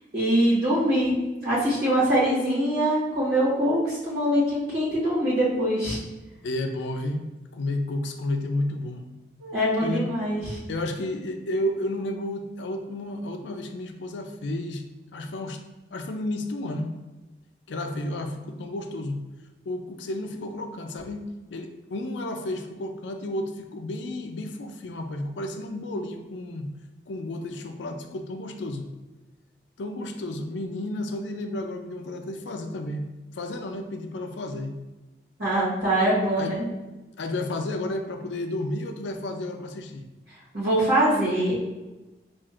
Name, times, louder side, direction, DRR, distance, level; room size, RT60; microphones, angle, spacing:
voice 1, 0.1-1.1 1.4-6.0 9.4-10.6 35.4-36.6 40.5-41.7, right 1 dB, 65° right, -10 dB, 1.3 m, -23 dB
voice 2, 6.4-7.2 7.5-9.0 9.8-10.1 10.7-14.8 15.1-15.6 15.9-16.9 17.7-19.2 19.7-26.7 27.1-28.8 29.8-33.1 33.3-34.7 36.4-36.6 37.2-40.0, left 1 dB, 85° left, 6 dB, 0.4 m, -32 dB
5.7 x 2.5 x 2.4 m, 1.1 s
head